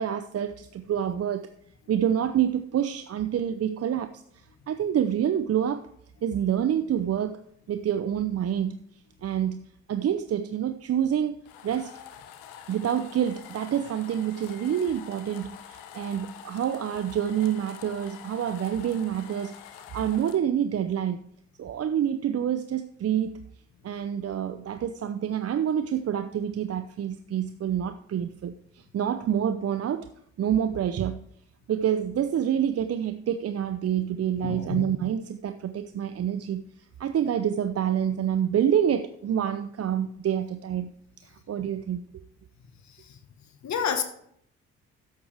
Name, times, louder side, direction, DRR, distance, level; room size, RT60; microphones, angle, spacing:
voice 1, 0.0-1.5 1.9-4.2 4.7-5.9 6.2-7.4 7.7-8.8 9.2-11.4 11.6-11.9 12.7-21.3 21.6-23.3 23.8-30.1 30.4-31.3 31.7-36.6 37.0-40.9 41.2-42.0, right 9 dB, 45° right, 0.7 m, -27 dB
sound 1, 11.4-20.4, left 9 dB, 75° left, 1.1 m, -46 dB
voice 2, 34.4-34.9 42.9-43.2 43.6-44.0, left 7 dB, 55° left, 1.5 m, -29 dB
13.0 x 10.5 x 3.5 m
hypercardioid pair, 45°, 34 cm